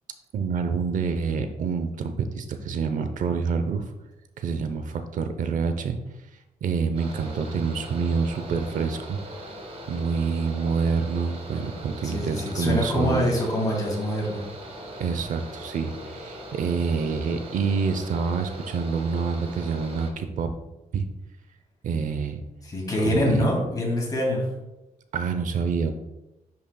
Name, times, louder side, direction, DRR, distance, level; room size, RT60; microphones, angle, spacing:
voice 1, 0.3-3.8 4.4-6.0 6.6-9.2 9.9-13.3 15.0-20.5 20.9-21.0 21.8-22.4 23.0-23.5 25.1-25.9, right 5 dB, 70° right, 8 dB, 0.7 m, -27 dB
Mechanical fan, 7.0-20.1, equal, 45° right, 1.2 m, -40 dB
voice 2, 12.0-14.4 22.6-24.4, left 1 dB, 25° left, -2 dB, 2.4 m, -25 dB
10.5 x 5.8 x 2.3 m, 0.97 s
wide cardioid pair, 150°, 14 cm